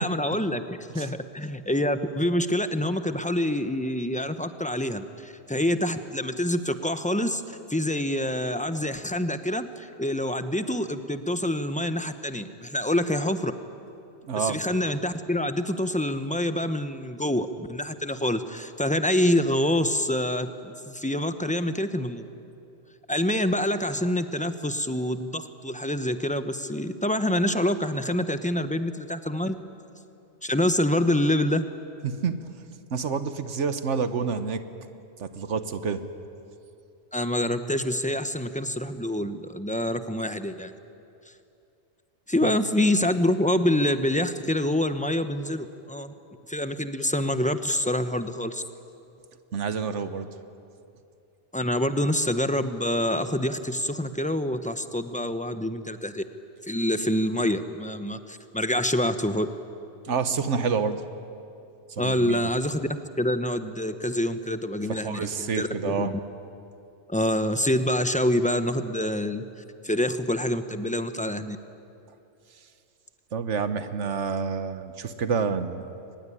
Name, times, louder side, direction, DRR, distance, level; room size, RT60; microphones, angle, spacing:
voice 1, 0.0-13.5 14.4-22.3 23.1-29.5 30.4-31.6 37.1-40.7 42.3-46.1 46.5-48.6 51.5-56.2 56.7-59.5 62.0-62.9 63.2-65.2 65.6-66.2 67.1-69.4 69.8-71.6, left 1 dB, 5° left, 10 dB, 0.8 m, -26 dB
voice 2, 14.2-14.6 32.0-32.4 32.9-34.6 35.2-36.0 42.4-42.5 49.5-50.3 60.0-61.0 61.9-62.4 64.9-66.2 73.3-75.8, right 5 dB, 80° right, 10 dB, 1.4 m, -28 dB
23.5 x 20.0 x 9.9 m, 2.7 s
omnidirectional pair, 1.2 m